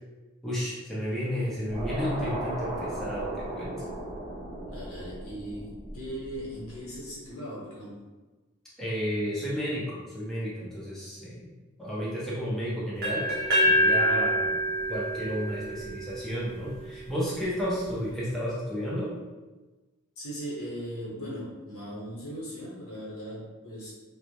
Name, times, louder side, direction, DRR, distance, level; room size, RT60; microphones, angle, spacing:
voice 1, 0.4-3.8 8.8-11.5 11.8-13.2 13.6-14.6 14.9-19.1, equal, ahead, -9 dB, 0.5 m, -32 dB
sound 1, 1.7-7.0, right 1 dB, 80° right, 0.8 m, -36 dB
voice 2, 4.7-8.0 20.2-23.9, equal, 85° left, -7 dB, 1.0 m, -38 dB
ships-bell, 13.0-16.9, equal, 45° right, 0.6 m, -26 dB
2.1 x 2.0 x 2.8 m, 1.2 s
head